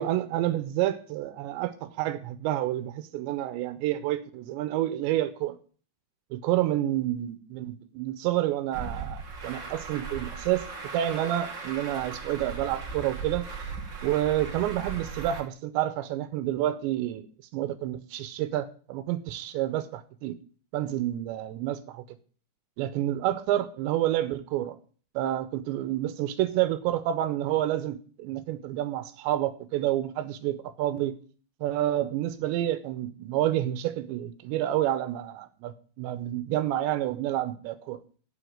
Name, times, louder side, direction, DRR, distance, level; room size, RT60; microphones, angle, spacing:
voice 1, 0.0-5.6 6.3-10.7 10.9-13.5 14.0-17.3 17.5-20.4 20.7-22.0 22.8-24.8 25.2-31.2 31.6-38.0, right 13 dB, 80° right, 2.9 m, -29 dB
Truck, 8.7-15.4, right 4 dB, 35° right, 2.0 m, -38 dB
8.7 x 8.1 x 7.7 m
omnidirectional pair, 5.2 m